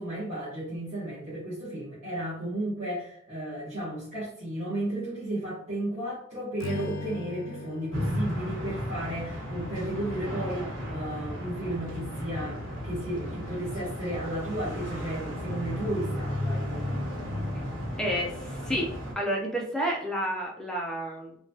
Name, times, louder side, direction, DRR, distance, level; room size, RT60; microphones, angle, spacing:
voice 1, 0.0-16.9, right 1 dB, 35° right, -11 dB, 1.0 m, -34 dB
Strum, 6.6-11.0, left 4 dB, 85° left, 0.3 m, -41 dB
sound 1, 7.9-19.1, equal, 85° right, 1.1 m, -34 dB
voice 2, 18.0-21.3, equal, 5° left, -2 dB, 0.5 m, -30 dB
2.9 x 2.2 x 2.7 m, 0.66 s
head